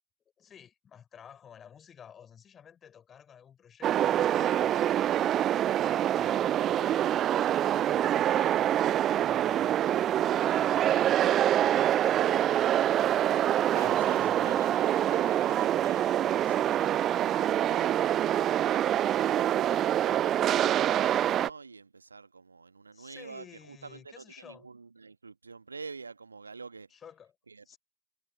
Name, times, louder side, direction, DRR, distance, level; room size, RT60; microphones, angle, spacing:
voice 1, 0.4-4.8 5.7-10.0 10.4-12.8 13.8-14.8 22.9-24.7 26.9-27.3 27.7-27.8, left 8 dB, 25° left, 5.2 m, -52 dB
sound 1, 3.8-21.5, right 11 dB, 30° right, 0.3 m, -25 dB
voice 2, 13.5-18.8 19.2-26.9 27.5-27.8, right 4 dB, 75° right, 1.6 m, -47 dB
figure-of-eight pair, 90°, 0 cm